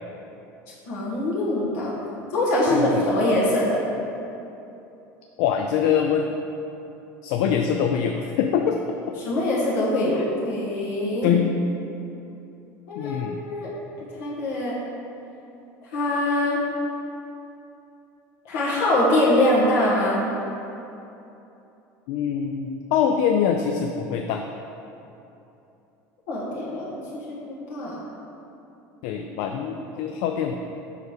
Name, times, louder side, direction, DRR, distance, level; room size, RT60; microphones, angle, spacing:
voice 1, 0.9-1.9 2.3-3.8 9.2-11.3 12.9-13.7 14.2-14.7 15.9-16.6 18.4-20.2 26.3-28.0, left 1 dB, 75° left, -7 dB, 1.5 m, -23 dB
voice 2, 2.7-3.0 5.4-6.3 7.2-9.0 10.1-10.2 11.2-11.5 13.0-13.4 22.1-24.4 29.0-30.5, left 7 dB, 55° left, 4 dB, 0.4 m, -24 dB
6.5 x 4.8 x 5.1 m, 2.9 s
cardioid pair, 180°, 7 cm